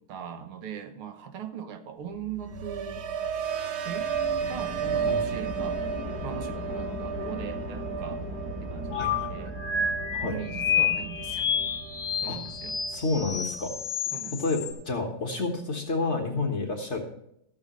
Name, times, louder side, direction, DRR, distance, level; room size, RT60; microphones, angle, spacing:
voice 1, 0.0-3.1 3.9-4.2 4.5-5.8 6.2-8.3 8.6-9.6 10.2-11.5 12.2-12.8 14.1-14.6, right 8 dB, 85° right, 9 dB, 1.8 m, -40 dB
sound 1, 2.1-12.2 12.6-13.0, right 7 dB, 65° right, 1.1 m, -34 dB
sound 2, 3.9-13.8, equal, 15° right, 1.4 m, -38 dB
sound 3, 8.9-14.7, left 6 dB, 60° left, 2.1 m, -30 dB
voice 2, 8.9-9.5 10.1-10.4 12.3-12.4 12.9-13.7 14.3-17.0, left 3 dB, 35° left, 2 dB, 1.5 m, -30 dB
14.0 x 8.5 x 3.1 m, 0.74 s
omnidirectional pair, 2.3 m